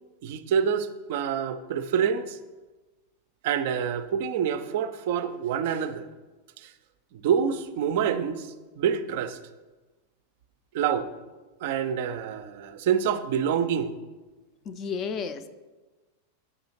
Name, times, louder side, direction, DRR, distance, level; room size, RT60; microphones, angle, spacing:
voice 1, 0.2-2.4 3.4-6.1 6.6-6.7 7.1-9.4 10.7-11.1 11.6-13.9, right 8 dB, 50° right, 11 dB, 0.3 m, -27 dB
voice 2, 14.7-15.5, left 6 dB, 30° left, 11 dB, 0.4 m, -32 dB
7.9 x 5.4 x 2.9 m, 1.2 s
figure-of-eight pair, 90°, 0 cm